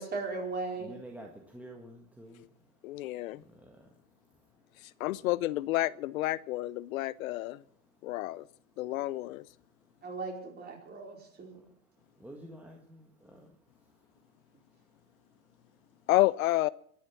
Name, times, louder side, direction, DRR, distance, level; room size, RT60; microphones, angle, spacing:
voice 1, 0.0-0.9 10.0-11.6, right 3 dB, 20° right, 4.7 m, -37 dB
voice 2, 0.8-2.5 3.4-3.9 12.2-13.5, right 1 dB, 5° right, 1.7 m, -49 dB
voice 3, 2.8-3.4 5.0-7.6 8.0-8.4 8.8-9.4 16.1-16.7, left 17 dB, 70° left, 0.6 m, -29 dB
21.5 x 11.0 x 5.9 m
supercardioid pair, 130°, 43 cm